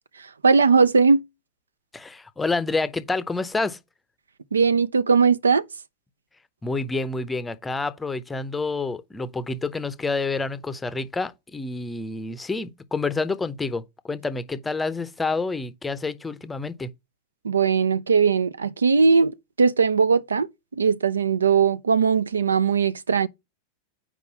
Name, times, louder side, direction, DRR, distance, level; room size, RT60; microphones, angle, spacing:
voice 1, 0.4-1.2 4.5-5.6 17.4-19.3 19.6-20.5 20.8-23.3, right 5 dB, 75° right, 0.3 m, -19 dB
voice 2, 1.9-3.8 6.6-16.9, left 3 dB, 10° left, 0.6 m, -28 dB
5.2 x 4.8 x 5.4 m
figure-of-eight pair, 90°, 0 cm